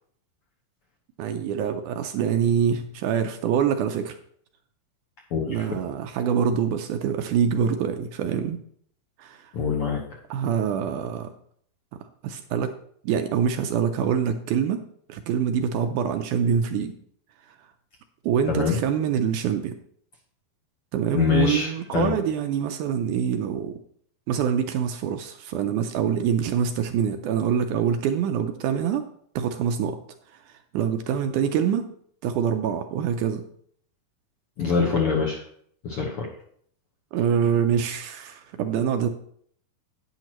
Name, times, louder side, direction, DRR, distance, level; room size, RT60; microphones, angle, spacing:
voice 1, 1.2-4.2 5.5-8.6 9.2-9.5 10.3-11.3 12.2-12.7 13.0-14.8 15.1-17.0 18.2-19.7 20.9-23.7 24.3-29.1 29.4-30.0 30.7-31.9 32.2-33.4 37.1-39.1, right 8 dB, 75° right, 7 dB, 1.9 m, -25 dB
voice 2, 5.3-5.6 9.5-10.2 18.5-18.8 21.1-22.2 34.6-35.4 35.8-36.3, left 6 dB, 60° left, -1 dB, 1.5 m, -24 dB
10.5 x 9.2 x 3.0 m, 0.62 s
omnidirectional pair, 3.9 m